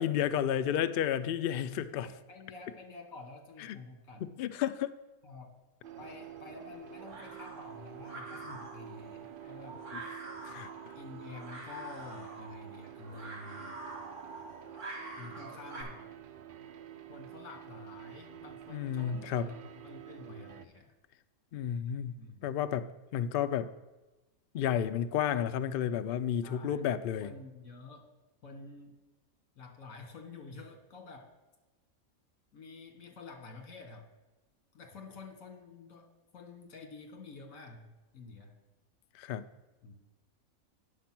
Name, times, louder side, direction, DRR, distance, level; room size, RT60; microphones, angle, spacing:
voice 1, 0.0-2.1 3.7-3.8 4.4-5.0 10.4-10.7 18.7-19.5 21.5-22.1 22.4-23.7 24.5-27.3 39.1-39.4, left 9 dB, 90° left, 11 dB, 0.5 m, -31 dB
voice 2, 2.0-4.3 5.2-5.5 6.0-9.8 11.0-13.7 15.2-16.0 17.1-20.9 22.2-22.5 26.4-26.8 27.2-28.1 28.4-29.0 29.6-31.3 32.5-34.1 34.7-36.1 36.3-38.5 39.8-40.0, left 3 dB, 70° left, 4 dB, 1.9 m, -49 dB
sound 1, 5.8-20.7, right 11 dB, 70° right, 0.5 m, -49 dB
sound 2, 5.9-15.8, right 2 dB, 55° right, 2.3 m, -47 dB
9.4 x 6.7 x 5.9 m, 1.1 s
omnidirectional pair, 1.5 m